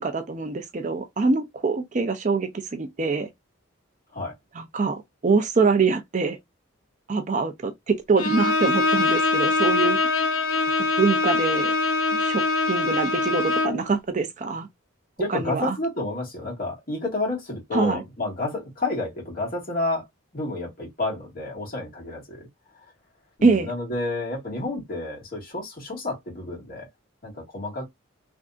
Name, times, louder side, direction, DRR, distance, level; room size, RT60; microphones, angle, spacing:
voice 1, 0.0-3.3 4.5-6.4 7.1-10.2 10.8-11.7 12.1-14.7 15.3-15.8 17.7-18.0 23.4-23.7, right 4 dB, 35° right, 0.5 m, -24 dB
Bowed string instrument, 8.2-13.9, left 3 dB, 85° left, 0.6 m, -23 dB
voice 2, 15.2-20.0 20.3-22.5 23.4-26.9 27.2-27.9, left 2 dB, 45° left, 1.9 m, -30 dB
3.4 x 2.6 x 2.5 m
head